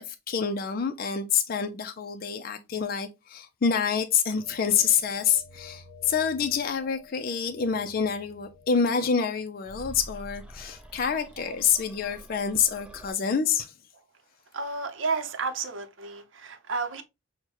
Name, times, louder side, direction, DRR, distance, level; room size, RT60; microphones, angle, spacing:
voice 1, 0.0-13.7, left 6 dB, 50° left, 0.4 m, -27 dB
sound 1, 4.4-9.4, left 4 dB, 35° right, 1.0 m, -51 dB
sound 2, 9.6-13.1, equal, 5° right, 0.5 m, -46 dB
voice 2, 14.5-17.0, right 4 dB, 75° right, 0.7 m, -32 dB
6.3 x 2.1 x 2.9 m
head